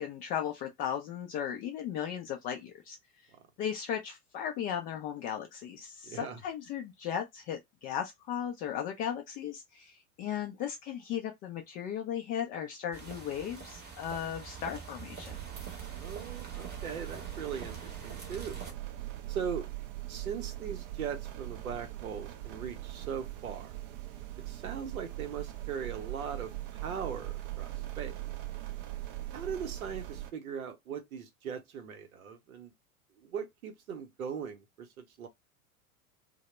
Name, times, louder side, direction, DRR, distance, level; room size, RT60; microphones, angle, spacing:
voice 1, 0.0-3.0 3.6-9.9 10.2-15.3, left 9 dB, 25° left, 0.3 m, -36 dB
voice 2, 6.0-6.4 15.9-18.6 19.3-19.7 20.1-23.7 24.5-28.1 29.3-32.7 33.2-35.3, right 7 dB, 75° right, 0.8 m, -39 dB
sound 1, 12.9-18.7, right 5 dB, 25° right, 0.8 m, -46 dB
sound 2, 15.3-30.3, right 15 dB, 40° right, 0.4 m, -41 dB
2.1 x 2.0 x 3.1 m
figure-of-eight pair, 90°, 43 cm